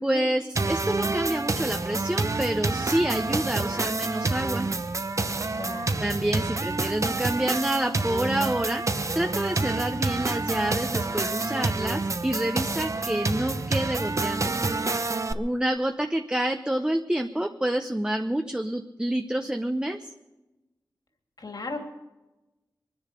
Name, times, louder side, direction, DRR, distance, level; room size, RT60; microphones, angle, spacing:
voice 1, 0.0-4.7 6.0-8.8 9.1-14.5 15.3-20.1, right 1 dB, 10° right, 6 dB, 0.8 m, -28 dB
sound 1, 0.5-15.3, right 3 dB, 45° right, 0.8 m, -28 dB
voice 2, 5.5-5.9 21.4-21.8, left 2 dB, 60° left, 3 dB, 2.9 m, -35 dB
23.5 x 10.5 x 5.1 m, 1.0 s
wide cardioid pair, 85°, 8 cm